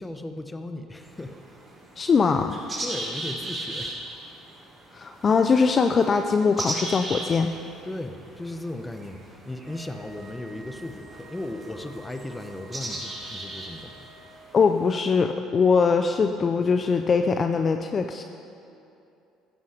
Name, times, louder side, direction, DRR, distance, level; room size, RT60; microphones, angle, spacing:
voice 1, 0.0-1.4 2.8-4.3 7.8-14.1, left 1 dB, 15° left, 7 dB, 1.1 m, -36 dB
sound 1, 1.0-14.9, right 1 dB, 25° right, 4.3 m, -38 dB
voice 2, 2.0-2.6 4.9-7.5 14.5-18.2, left 5 dB, 35° left, 6 dB, 0.6 m, -22 dB
Wind instrument woodwind instrument, 9.6-14.4, right 2 dB, 45° right, 2.2 m, -50 dB
15.0 x 13.5 x 5.1 m, 2.7 s
supercardioid pair, 100°, 0 cm